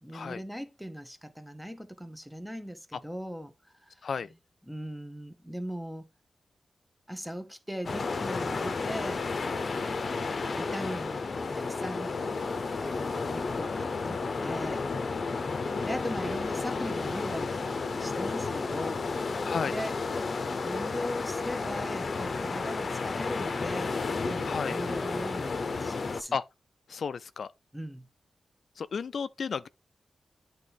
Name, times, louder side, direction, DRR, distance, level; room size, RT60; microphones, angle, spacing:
voice 1, 0.0-4.4 4.6-6.1 7.1-9.2 10.2-12.2 12.8-14.9 15.8-19.1 19.6-20.0 20.6-24.0 24.2-26.4 27.7-28.1, equal, ahead, 1.0 m, -39 dB
sound 1, 7.8-26.2, left 4 dB, 55° left, 0.7 m, -32 dB
voice 2, 24.4-24.8 26.3-26.4 26.9-27.5 28.8-29.7, left 6 dB, 70° left, 0.3 m, -33 dB
8.5 x 3.5 x 4.0 m
cardioid pair, 80°, 0 cm